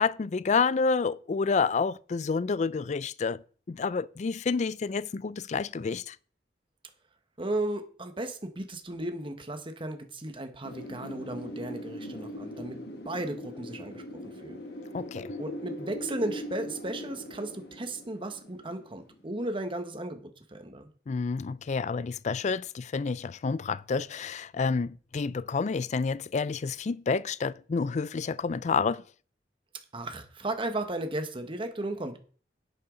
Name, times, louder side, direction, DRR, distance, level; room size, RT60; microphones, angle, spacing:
voice 1, 0.0-3.4 3.7-6.1 14.9-15.3 21.1-29.0, left 5 dB, 40° left, 0.4 m, -29 dB
voice 2, 7.4-12.8 13.0-14.6 15.4-20.2 20.5-20.9 29.9-32.2, right 1 dB, 30° right, 1.3 m, -35 dB
Wind, 10.6-19.4, left 1 dB, 65° left, 1.6 m, -41 dB
11.0 x 8.2 x 3.9 m
head